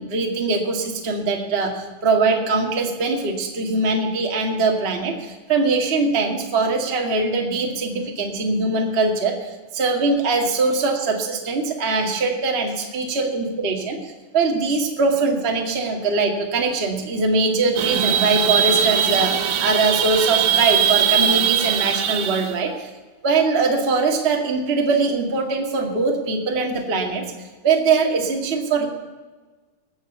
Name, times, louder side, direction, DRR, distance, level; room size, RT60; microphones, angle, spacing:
voice 1, 0.0-22.9 23.2-27.2 27.6-28.9, right 3 dB, 30° right, 2 dB, 1.2 m, -22 dB
sound 1, 17.8-22.5, right 9 dB, 75° right, 2.7 m, -20 dB
19.5 x 7.2 x 8.1 m, 1.3 s
omnidirectional pair, 4.3 m